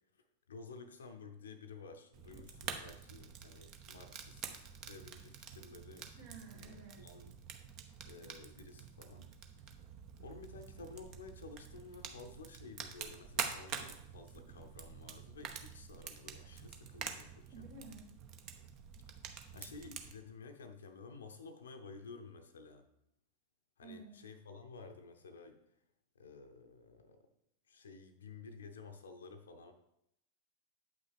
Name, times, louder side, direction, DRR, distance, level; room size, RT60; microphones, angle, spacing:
voice 1, 0.5-6.1 6.5-7.3 8.0-9.3 10.2-17.7 19.5-22.9 23.8-25.6 26.1-27.3 27.7-29.7, left 4 dB, 65° left, 8 dB, 0.6 m, -53 dB
Fire, 2.1-20.1, right 7 dB, 40° right, 0.8 m, -47 dB
voice 2, 6.2-7.1 17.5-18.1 23.8-24.2, right 2 dB, 60° right, 0 dB, 2.0 m, -52 dB
8.1 x 5.8 x 3.4 m, 0.80 s
figure-of-eight pair, 90°, 0 cm